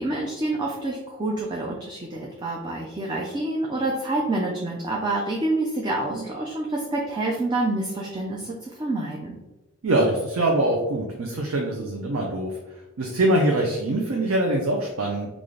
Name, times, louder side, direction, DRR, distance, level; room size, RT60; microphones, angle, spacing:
voice 1, 0.0-9.4, right 2 dB, 20° right, -2 dB, 0.4 m, -27 dB
voice 2, 9.8-12.5 13.0-15.3, right 1 dB, 75° right, 0 dB, 0.5 m, -23 dB
3.8 x 2.4 x 3.2 m, 1.1 s
head